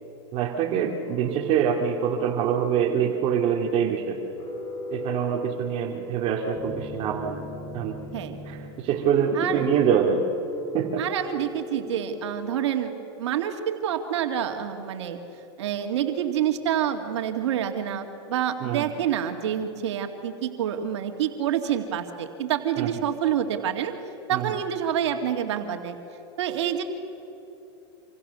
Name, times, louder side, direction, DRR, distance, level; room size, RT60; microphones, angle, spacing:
voice 1, 0.3-4.2 4.9-7.4 7.7-8.0 8.5-10.3 10.7-11.0 18.6-18.9 22.8-22.9 24.3-24.4, right 8 dB, 45° right, 2 dB, 2.3 m, -25 dB
sound 1, 1.1-12.6, left 1 dB, 35° left, 7.2 m, -37 dB
voice 2, 9.3-9.7 11.0-15.2 15.6-23.9 24.3-26.0 26.4-26.8, right 9 dB, 80° right, 5 dB, 2.3 m, -27 dB
26.5 x 26.0 x 7.0 m, 3.0 s
supercardioid pair, 130°, 15 cm